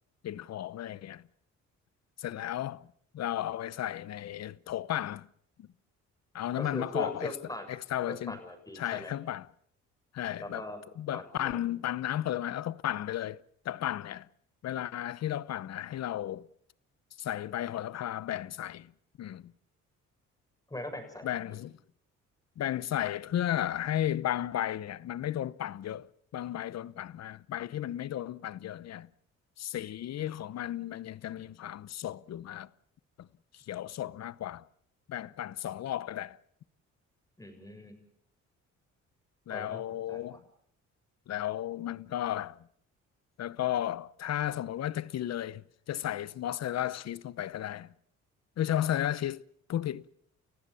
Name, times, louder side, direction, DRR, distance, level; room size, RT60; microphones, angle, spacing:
voice 1, 0.2-1.3 2.2-2.9 3.1-5.3 5.6-5.7 6.3-7.3 7.7-8.4 8.8-9.5 10.1-10.7 11.0-14.3 14.6-16.5 17.2-18.9 19.2-19.5 21.2-21.8 22.6-29.1 29.6-32.7 33.2-33.3 33.5-34.7 35.1-36.4 39.5-40.4 41.3-42.6 43.4-47.9 48.6-50.2, left 12 dB, 60° left, 0.8 m, -34 dB
voice 2, 6.6-7.7 8.1-9.1 10.4-10.8 11.1-11.6 20.7-21.6 37.4-38.0 39.5-39.8 40.1-40.4, left 1 dB, 10° left, 6.9 m, -40 dB
30.0 x 15.5 x 7.1 m
cardioid pair, 90°, 30 cm